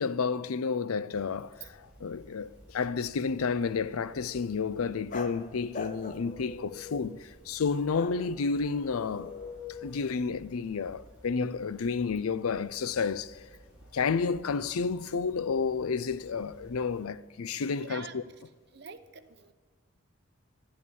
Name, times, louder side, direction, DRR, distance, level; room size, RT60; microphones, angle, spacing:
voice 1, 0.0-9.3 9.8-13.4 13.9-18.2, left 5 dB, 90° left, 0.5 m, -31 dB
sound 1, 1.1-17.1, equal, 5° right, 4.6 m, -56 dB
sound 2, 4.1-5.4 5.7-7.3 7.9-10.0, left 4 dB, 35° left, 0.8 m, -43 dB
voice 2, 17.7-18.2 18.7-19.5, right 5 dB, 50° right, 0.8 m, -46 dB
12.5 x 11.0 x 7.0 m
head